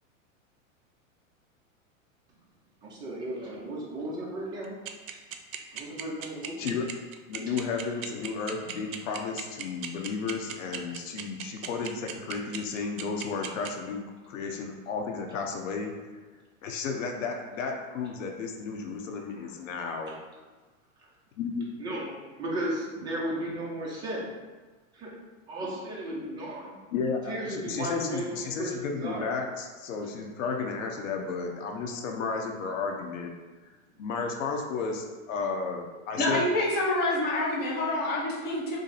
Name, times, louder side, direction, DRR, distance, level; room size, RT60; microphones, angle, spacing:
voice 1, 2.8-4.8 5.7-6.8 19.4-19.5 21.8-24.3 24.9-25.1 25.5-26.8 27.3-29.3, right 1 dB, 10° right, -4 dB, 0.4 m, -35 dB
sound 1, 4.6-13.7, right 10 dB, 80° right, 0.6 m, -36 dB
voice 2, 7.3-15.9 16.6-20.1 21.4-21.7 26.9-33.3 34.0-36.5, left 5 dB, 70° left, 2 dB, 0.7 m, -33 dB
voice 3, 36.2-38.8, left 1 dB, 25° left, -3 dB, 0.7 m, -27 dB
3.3 x 2.6 x 3.9 m, 1.3 s
supercardioid pair, 145°, 40 cm